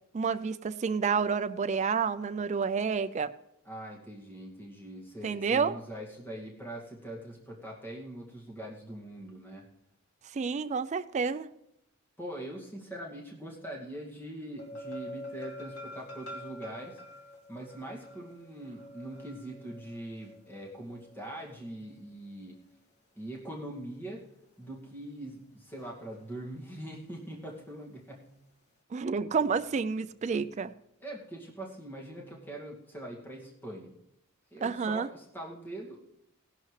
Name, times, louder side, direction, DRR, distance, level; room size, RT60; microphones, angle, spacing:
voice 1, 0.1-3.3 5.2-5.7 10.3-11.5 28.9-30.7 34.6-35.1, right 5 dB, 35° right, 11 dB, 0.4 m, -29 dB
voice 2, 3.6-9.7 12.2-17.0 17.5-22.6 23.2-24.2 24.6-28.3 31.0-33.9 34.5-36.0, right 1 dB, 10° left, -3 dB, 2.1 m, -42 dB
sound 1, 14.6-21.9 25.8-26.2 26.5-26.6, left 1 dB, 90° left, 2.1 m, -46 dB
17.0 x 11.5 x 3.3 m, 0.83 s
head